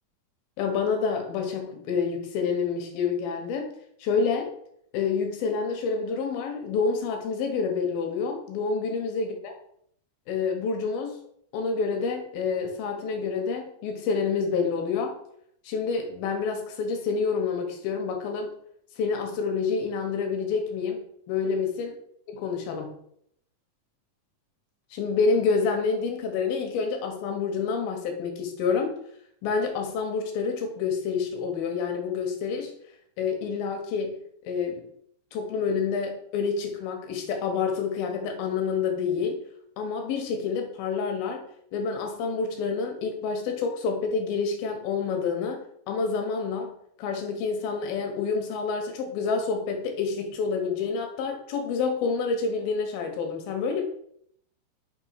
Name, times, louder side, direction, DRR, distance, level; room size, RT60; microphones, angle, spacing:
voice 1, 0.6-3.7 4.0-4.5 4.9-9.5 10.3-11.2 11.5-15.2 15.6-18.5 19.0-21.9 22.4-22.9 24.9-28.9 29.4-32.7 33.2-34.2 34.5-34.8 35.3-39.4 39.8-41.4 41.7-45.6 45.9-46.7 47.0-53.8, left 5 dB, 90° left, 3 dB, 2.7 m, -28 dB
6.6 x 2.9 x 5.4 m, 0.68 s
omnidirectional pair, 4.0 m